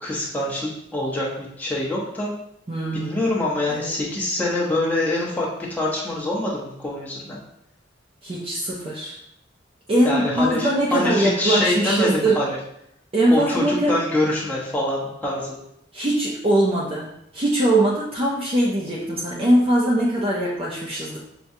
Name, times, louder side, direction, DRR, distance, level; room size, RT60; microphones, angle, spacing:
voice 1, 0.0-2.3 2.9-7.4 10.0-12.6 13.3-15.6, left 1 dB, 10° left, -6 dB, 0.9 m, -25 dB
voice 2, 2.7-3.2 3.7-4.0 8.2-9.2 9.9-12.4 13.1-14.0 15.9-21.2, right 1 dB, 30° right, -5 dB, 0.6 m, -21 dB
5.8 x 2.3 x 2.7 m, 0.77 s
head